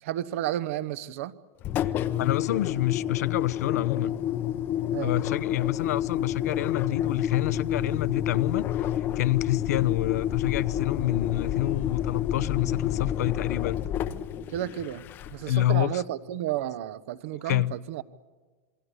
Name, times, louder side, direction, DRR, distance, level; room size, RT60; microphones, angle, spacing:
voice 1, 0.0-1.3 4.9-5.1 14.5-15.0 15.3-18.0, right 12 dB, 55° right, 1.0 m, -32 dB
Engine, 1.6-15.6, left 11 dB, 25° left, 0.8 m, -29 dB
voice 2, 2.2-4.2 5.0-13.8 15.4-16.0 17.4-17.8, left 14 dB, 80° left, 0.7 m, -28 dB
27.0 x 22.5 x 8.2 m
supercardioid pair, 170°, 9 cm